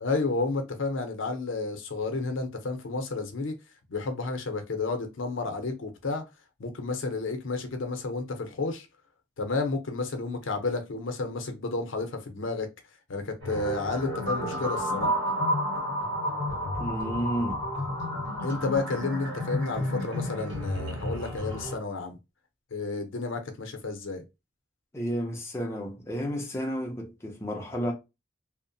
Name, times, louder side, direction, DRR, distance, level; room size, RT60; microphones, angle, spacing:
voice 1, 0.0-3.6 3.9-6.2 6.6-8.9 9.4-12.7 13.1-15.1 18.4-22.2 22.7-24.2, left 3 dB, 75° left, 0.6 m, -31 dB
sound 1, 13.4-21.8, equal, 60° right, 1.7 m, -31 dB
voice 2, 16.8-17.6 24.9-27.9, equal, 15° left, 0.5 m, -31 dB
2.7 x 2.1 x 2.6 m
head